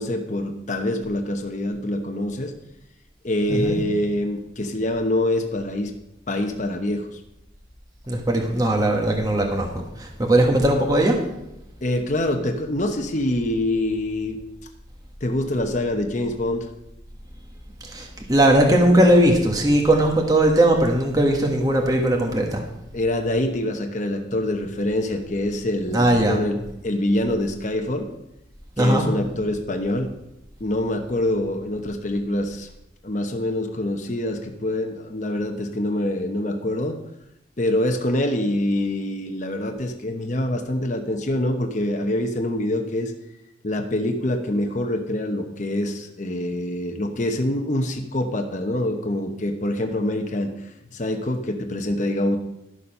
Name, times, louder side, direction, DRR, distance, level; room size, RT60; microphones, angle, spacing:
voice 1, 0.0-2.5 3.2-5.9 6.3-7.2 11.8-14.4 15.2-16.7 22.9-28.1 28.8-30.1 30.6-32.7 33.0-37.0 37.6-43.1 43.6-50.5 50.9-52.4, left 1 dB, 40° left, 4 dB, 0.9 m, -25 dB
voice 2, 8.1-11.2 17.9-22.6 25.9-26.4 28.8-29.0, right 1 dB, 20° right, 1 dB, 1.3 m, -19 dB
12.0 x 7.0 x 5.5 m, 0.89 s
head